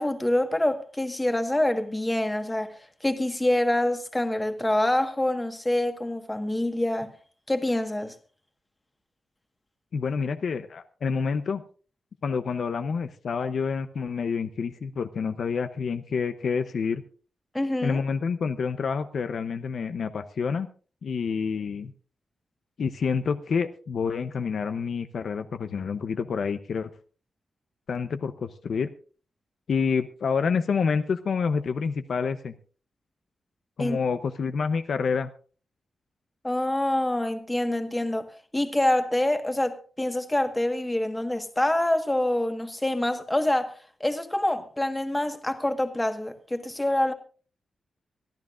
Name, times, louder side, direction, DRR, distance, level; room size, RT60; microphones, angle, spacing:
voice 1, 0.0-7.1 7.5-8.1 17.5-18.0 33.8-34.0 36.4-47.1, left 1 dB, 10° left, 1.5 m, -26 dB
voice 2, 9.9-11.6 12.2-17.0 17.8-20.7 21.0-21.9 22.8-26.9 27.9-28.9 29.7-32.5 33.8-35.3, left 5 dB, 60° left, 0.7 m, -28 dB
23.5 x 14.5 x 2.5 m
wide cardioid pair, 160°, 0 cm